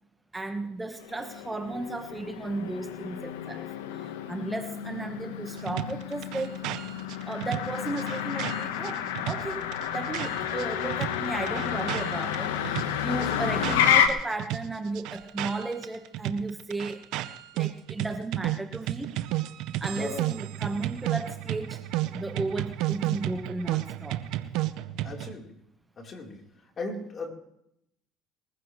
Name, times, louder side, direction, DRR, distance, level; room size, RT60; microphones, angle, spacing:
voice 1, 0.3-3.6 3.9-6.6 7.2-17.1 17.5-19.1 19.8-24.2, right 2 dB, 15° right, 6 dB, 1.4 m, -35 dB
Motor vehicle (road), 1.0-14.1, left 9 dB, 90° left, 1.3 m, -30 dB
sound 1, 5.7-10.6 10.9-14.1 14.4-25.3, right 15 dB, 70° right, 0.9 m, -32 dB
voice 2, 13.1-13.5 20.0-20.2 25.0-25.5 26.0-26.4 26.8-27.3, left 3 dB, 40° left, 1 dB, 4.1 m, -37 dB
21.5 x 15.0 x 3.3 m, 0.77 s
hypercardioid pair, 75°, 0 cm